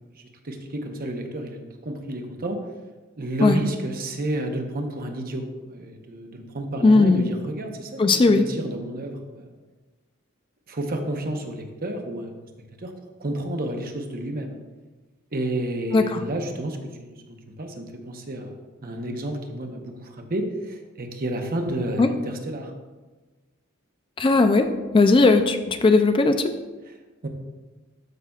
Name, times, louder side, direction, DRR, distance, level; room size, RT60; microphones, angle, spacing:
voice 1, 0.2-2.6 3.2-9.5 10.7-12.3 12.8-12.9 13.2-14.6 15.3-18.5 18.8-22.7 26.9-27.0 27.2-27.3, right 1 dB, 45° right, 4 dB, 0.9 m, -31 dB
voice 2, 6.8-7.2 8.0-8.4 15.9-16.2 22.0-22.1 24.2-24.7 24.9-26.5, left 3 dB, 25° left, 8 dB, 0.3 m, -17 dB
13.0 x 5.7 x 2.4 m, 1.3 s
head